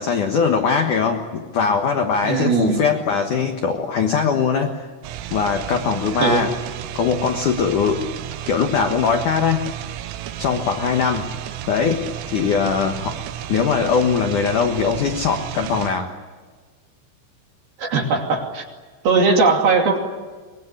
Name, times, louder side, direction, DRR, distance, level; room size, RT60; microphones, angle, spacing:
voice 1, 0.0-4.9 5.3-6.6 6.9-8.0 8.5-9.7 10.4-11.3 11.7-13.2 13.5-16.1, left 6 dB, 75° left, 4 dB, 1.8 m, -21 dB
voice 2, 2.2-2.8 6.2-6.4 17.8-18.7 19.0-20.0, right 4 dB, 50° right, 2 dB, 4.2 m, -18 dB
sound 1, 5.0-15.9, right 11 dB, 80° right, 3.6 m, -32 dB
24.5 x 21.0 x 9.7 m, 1.4 s
omnidirectional pair, 6.0 m